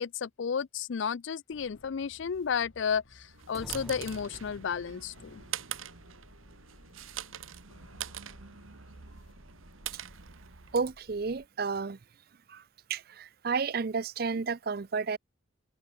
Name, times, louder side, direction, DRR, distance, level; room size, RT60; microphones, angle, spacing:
voice 1, 0.0-5.4, left 6 dB, 65° left, 0.4 m, -32 dB
sound 1, 1.5-11.5, left 2 dB, 80° left, 1.8 m, -58 dB
sound 2, 3.2-10.9, right 10 dB, 85° right, 1.3 m, -44 dB
sound 3, 3.5-5.1, equal, ahead, 1.3 m, -46 dB
voice 2, 10.7-12.0 12.5-12.6 12.9-15.2, right 5 dB, 50° right, 0.5 m, -31 dB
head